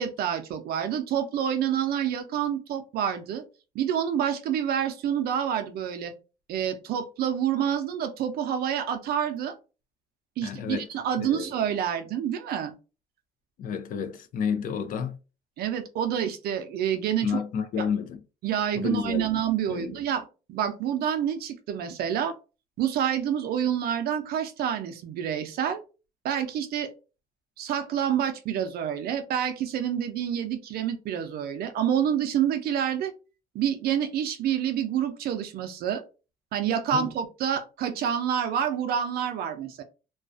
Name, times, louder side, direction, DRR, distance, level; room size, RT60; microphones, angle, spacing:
voice 1, 0.0-3.4 3.7-6.1 6.5-9.5 10.4-12.7 15.6-17.4 17.8-17.9 18.4-20.2 20.5-22.3 22.8-25.8 26.2-26.9 27.6-33.1 33.5-36.0 36.5-39.8, right 9 dB, 65° right, 0.5 m, -28 dB
voice 2, 10.4-10.9 11.2-11.5 13.6-15.2 17.2-18.2 18.7-19.4 19.7-20.0 36.9-37.1, left 7 dB, 55° left, 0.5 m, -30 dB
2.3 x 2.2 x 2.5 m
cardioid pair, 110°, 17 cm